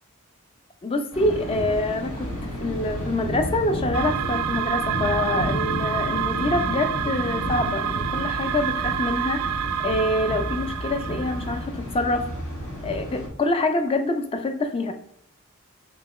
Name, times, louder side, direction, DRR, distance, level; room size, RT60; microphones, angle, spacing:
voice 1, 0.8-9.4 9.8-12.3 12.8-14.9, left 2 dB, 25° left, 7 dB, 0.4 m, -26 dB
Thunder, 1.1-13.3, equal, 70° left, 1.2 m, -31 dB
sound 1, 3.9-11.7, right 10 dB, 85° right, 0.3 m, -28 dB
3.5 x 3.2 x 2.9 m, 0.70 s
head